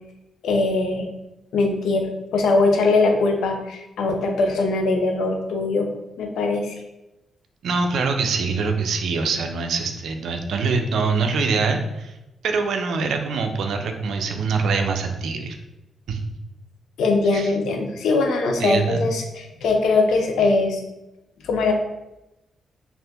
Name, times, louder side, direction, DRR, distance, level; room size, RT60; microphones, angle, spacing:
voice 1, 0.4-1.1 1.5-5.9 6.2-6.8 17.0-20.8 21.4-21.7, left 3 dB, 90° left, 3 dB, 0.5 m, -21 dB
voice 2, 7.6-12.1 12.4-15.6 16.1-16.2 17.3-17.5 18.6-19.1, right 4 dB, 75° right, 5 dB, 0.4 m, -24 dB
2.7 x 2.5 x 3.4 m, 0.94 s
cardioid pair, 105°, 0 cm